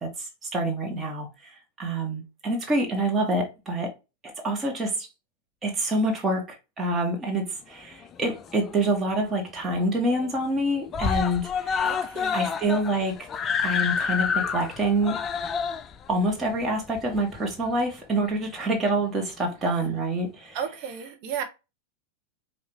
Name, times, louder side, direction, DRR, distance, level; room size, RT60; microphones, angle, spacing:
voice 1, 0.0-3.9 4.4-5.1 5.6-11.9 12.3-13.3 13.6-15.2 16.1-20.6, right 1 dB, 20° right, 1.8 m, -27 dB
Screaming, 8.0-8.9 9.3-9.4 9.7-9.8 10.1-10.6 10.9-17.7 18.6-18.7, left 6 dB, 25° left, 0.4 m, -29 dB
voice 2, 11.8-12.4 20.5-21.4, right 8 dB, 45° right, 1.4 m, -33 dB
4.9 x 3.0 x 3.2 m
figure-of-eight pair, 90°, 0 cm